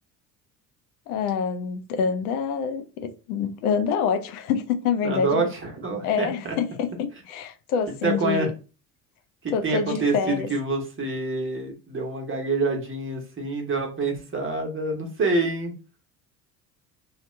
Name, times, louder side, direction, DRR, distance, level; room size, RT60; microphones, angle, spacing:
voice 1, 1.1-5.5 6.0-8.5 9.5-10.5, left 6 dB, 70° left, 0.6 m, -26 dB
voice 2, 5.0-6.5 8.0-8.5 9.4-15.7, right 3 dB, 25° right, 1.1 m, -27 dB
2.8 x 2.4 x 3.2 m
hypercardioid pair, 65°, 46 cm